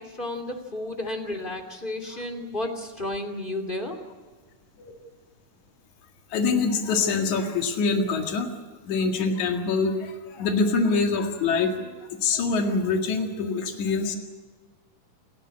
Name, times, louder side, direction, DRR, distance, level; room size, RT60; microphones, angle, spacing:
voice 1, 0.0-4.0, left 1 dB, 15° left, 5 dB, 2.4 m, -32 dB
voice 2, 6.3-8.5 8.9-14.2, left 4 dB, 70° left, 4 dB, 3.4 m, -25 dB
28.0 x 12.5 x 9.8 m, 1.4 s
omnidirectional pair, 3.6 m